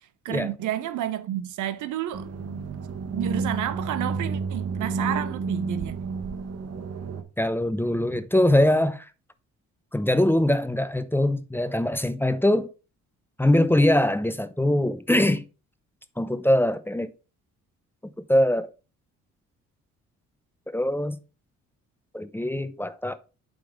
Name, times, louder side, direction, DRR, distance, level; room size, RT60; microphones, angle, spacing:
voice 1, 0.2-2.3 3.1-6.0, right 12 dB, 80° right, 0.9 m, -30 dB
sound 1, 2.1-7.2, right 4 dB, 55° right, 1.2 m, -30 dB
voice 2, 7.4-9.1 9.9-12.7 13.4-15.5 16.2-17.1 18.3-18.7 20.7-21.2 22.1-23.1, left 1 dB, 5° left, 0.7 m, -22 dB
8.3 x 3.8 x 5.0 m
cardioid pair, 90°, 30 cm